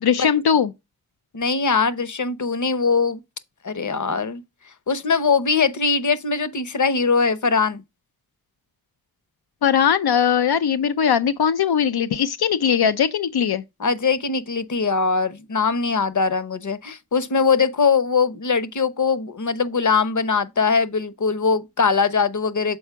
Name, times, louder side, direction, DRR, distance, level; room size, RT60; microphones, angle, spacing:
voice 1, 0.0-0.7 9.6-13.6, left 8 dB, 90° left, 0.5 m, -20 dB
voice 2, 1.3-3.2 3.6-4.4 4.9-7.8 13.8-22.8, left 5 dB, 50° left, 0.9 m, -21 dB
7.1 x 4.4 x 3.4 m
wide cardioid pair, 50°, 37 cm